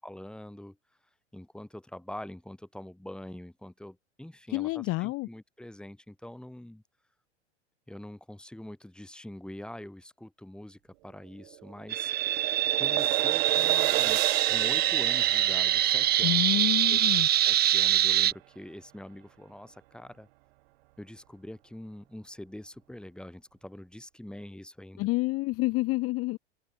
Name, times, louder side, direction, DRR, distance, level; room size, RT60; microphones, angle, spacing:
voice 1, 0.0-0.8 1.3-6.8 7.9-12.1 12.7-14.2 14.5-16.4 16.8-20.3 21.0-25.1, left 1 dB, ahead, 3.6 m, -44 dB
voice 2, 4.5-5.3 16.2-17.3 25.0-26.4, left 21 dB, 40° left, 1.1 m, -28 dB
sound 1, 11.4-17.7, right 21 dB, 60° right, 1.0 m, -33 dB
sound 2, 11.9-18.3, right 12 dB, 25° right, 1.0 m, -25 dB
hypercardioid pair, 95°, 35 cm